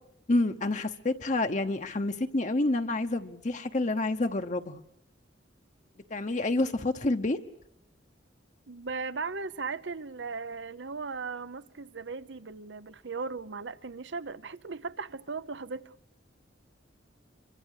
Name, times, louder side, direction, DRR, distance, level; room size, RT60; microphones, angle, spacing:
voice 1, 0.3-4.8 6.1-7.4, left 2 dB, 40° left, 0.9 m, -28 dB
voice 2, 8.7-15.9, right 4 dB, 75° right, 0.8 m, -37 dB
26.0 x 24.0 x 6.6 m
head